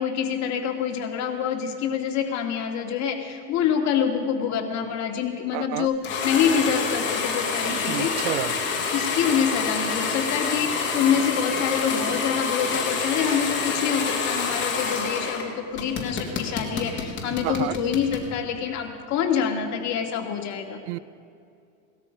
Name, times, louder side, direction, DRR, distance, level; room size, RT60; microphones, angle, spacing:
voice 1, 0.0-8.1 8.9-20.8, left 7 dB, 50° left, 2.3 m, -26 dB
voice 2, 5.5-5.9 7.7-8.5 17.4-17.8 20.9-21.0, right 19 dB, 75° right, 0.5 m, -30 dB
sound 1, 6.0-15.4 15.8-18.3, left 5 dB, 30° left, 2.9 m, -27 dB
18.5 x 13.0 x 5.3 m
supercardioid pair, 125°, 36 cm